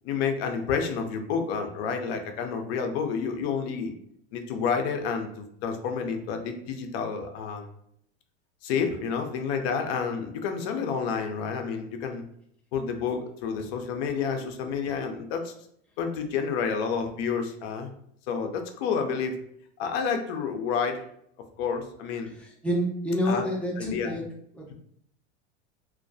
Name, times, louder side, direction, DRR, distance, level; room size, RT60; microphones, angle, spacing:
voice 1, 0.0-3.9 4.3-7.7 8.6-12.2 12.7-15.5 16.0-17.9 18.3-19.4 19.8-21.0 21.6-22.3 23.2-23.5 23.8-24.2, left 6 dB, 60° left, 5 dB, 0.5 m, -29 dB
voice 2, 22.6-24.2 24.6-24.7, equal, 5° left, -3 dB, 0.6 m, -28 dB
2.3 x 2.2 x 2.6 m, 0.70 s
hypercardioid pair, 95°, 35 cm